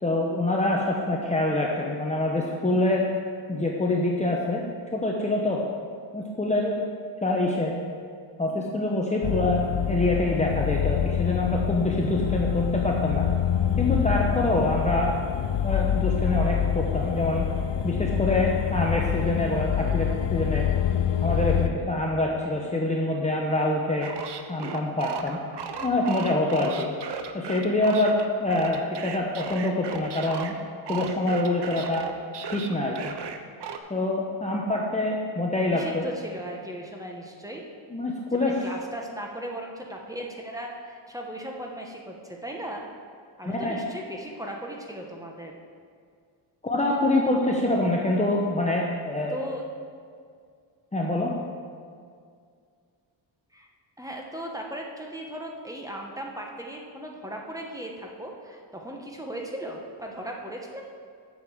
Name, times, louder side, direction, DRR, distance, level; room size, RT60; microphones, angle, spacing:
voice 1, 0.0-3.1 3.5-4.6 4.9-5.6 6.1-6.8 7.2-7.8 8.4-13.3 13.8-15.1 15.6-17.5 17.8-20.7 21.2-24.1 24.5-25.4 25.8-26.9 27.3-30.5 30.9-32.1 32.5-33.1 33.9-36.0 37.9-38.6 43.4-43.8 46.6-49.4 50.9-51.3, left 2 dB, 15° left, -2 dB, 0.9 m, -25 dB
sound 1, 9.2-21.7, left 9 dB, 65° left, 0.7 m, -26 dB
sound 2, 24.0-30.5 30.9-33.8, right 7 dB, 60° right, 0.8 m, -36 dB
voice 2, 35.7-37.6 38.3-42.9 43.4-45.5 49.3-49.6 53.5-53.7 54.0-60.8, right 1 dB, 5° right, 0 dB, 1.2 m, -37 dB
8.0 x 6.9 x 7.0 m, 2.2 s
wide cardioid pair, 120°, 47 cm